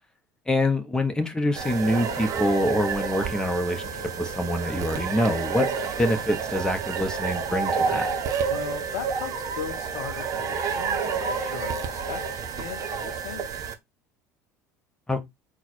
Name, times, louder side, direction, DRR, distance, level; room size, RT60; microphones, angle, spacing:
voice 1, 0.5-5.7 6.0-8.1 15.1-15.2, left 1 dB, 10° left, 1.0 m, -25 dB
sound 1, 1.6-13.7, right 5 dB, 40° right, 0.9 m, -29 dB
voice 2, 8.5-12.2 12.5-13.5, left 8 dB, 65° left, 0.8 m, -37 dB
4.0 x 2.4 x 4.3 m
figure-of-eight pair, 65°, 9 cm